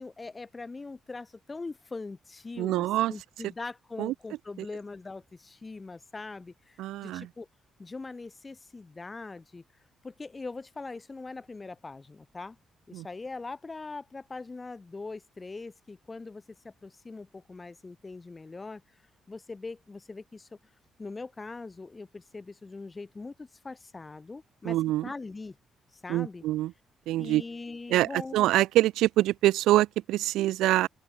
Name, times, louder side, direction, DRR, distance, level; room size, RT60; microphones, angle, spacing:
voice 1, 0.0-7.5 7.8-9.6 10.0-12.6 12.9-19.0 19.3-20.5 21.0-24.8 25.0-25.6 25.9-26.4 27.2-28.5, left 3 dB, 25° left, 5.0 m, -41 dB
voice 2, 2.6-3.1 4.0-4.1 6.8-7.3 12.9-13.1 24.6-25.1 26.1-26.7 27.1-27.4 27.9-30.9, right 15 dB, 90° right, 0.9 m, -25 dB
open air
cardioid pair, 90°, 0 cm